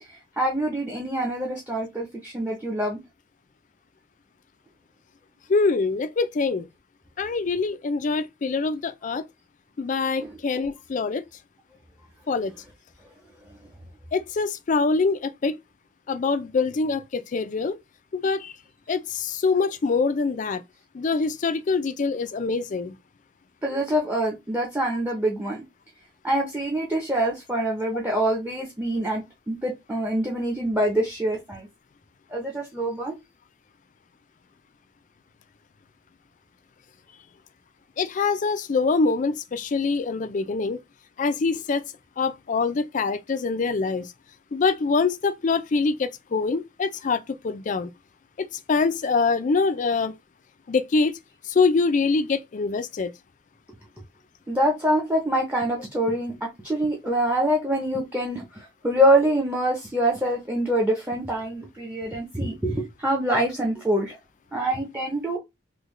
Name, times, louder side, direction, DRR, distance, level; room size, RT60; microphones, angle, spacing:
voice 1, 0.4-3.0 10.2-10.3 23.6-25.6 26.2-31.7 32.3-33.1 54.5-58.4 58.8-64.1 64.5-65.4, right 1 dB, 10° right, 0.7 m, -25 dB
voice 2, 5.5-6.7 7.2-9.2 9.8-11.2 12.3-12.5 14.1-15.6 16.1-17.8 18.1-18.5 18.9-20.6 20.9-23.0 38.0-40.8 41.2-41.8 42.2-44.1 44.5-47.9 48.4-50.1 50.7-51.2 51.5-53.1, left 4 dB, 40° left, 0.4 m, -24 dB
3.7 x 2.2 x 3.1 m
head